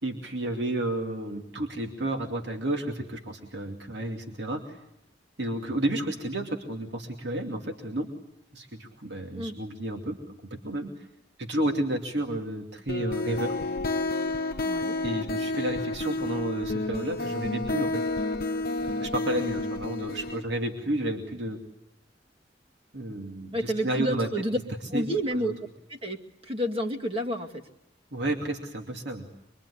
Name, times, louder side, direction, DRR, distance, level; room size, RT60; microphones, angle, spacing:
voice 1, 0.0-4.8 5.4-8.1 8.5-10.9 11.4-13.9 15.0-18.0 18.8-21.6 22.9-24.3 24.9-25.0 25.3-25.5 28.1-29.3, right 1 dB, 70° right, 4 dB, 2.6 m, -31 dB
sound 1, 12.9-20.4, left 2 dB, 60° left, 1.0 m, -30 dB
voice 2, 14.7-15.0 23.5-24.6 24.9-25.5 25.9-27.6, equal, 30° right, 2 dB, 2.3 m, -30 dB
25.5 x 23.0 x 9.9 m, 0.81 s
head